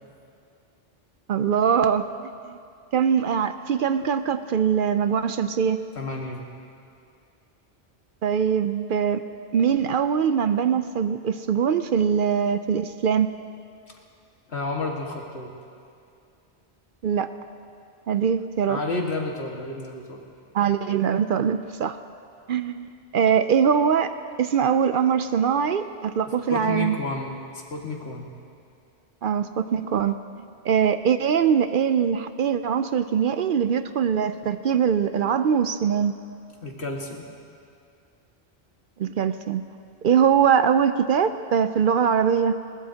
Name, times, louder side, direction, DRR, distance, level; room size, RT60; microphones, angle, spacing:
voice 1, 1.3-2.0 2.5-2.6 2.9-5.8 8.2-9.2 9.5-13.3 17.0-17.3 18.1-18.8 20.5-22.0 22.5-22.9 23.1-24.1 24.4-26.9 29.2-36.1 39.0-39.6 40.0-42.5, right 7 dB, 60° right, 10 dB, 0.6 m, -22 dB
voice 2, 6.0-6.4 14.5-15.5 18.7-20.3 26.5-28.3 36.6-37.3, left 2 dB, 80° left, 0 dB, 2.0 m, -31 dB
21.0 x 19.0 x 2.8 m, 2.4 s
omnidirectional pair, 1.1 m